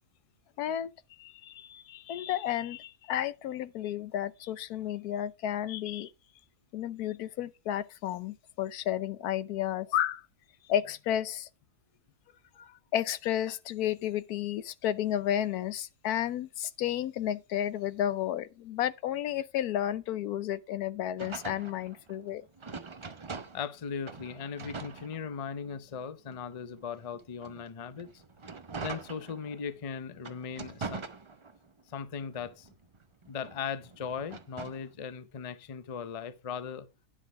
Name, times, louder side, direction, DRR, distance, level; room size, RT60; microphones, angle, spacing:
voice 1, 0.6-0.9 1.2-6.1 6.7-10.2 10.7-11.5 12.6-22.4, left 11 dB, 85° left, 1.2 m, -32 dB
sound 1, 21.2-23.8 24.0-25.7 26.3-29.7 30.2-31.8 32.2-34.9, right 4 dB, 30° right, 0.5 m, -43 dB
voice 2, 23.5-28.1 28.8-31.1 31.9-32.7 33.3-36.9, left 6 dB, 40° left, 0.5 m, -38 dB
10.0 x 6.0 x 4.6 m
omnidirectional pair, 1.6 m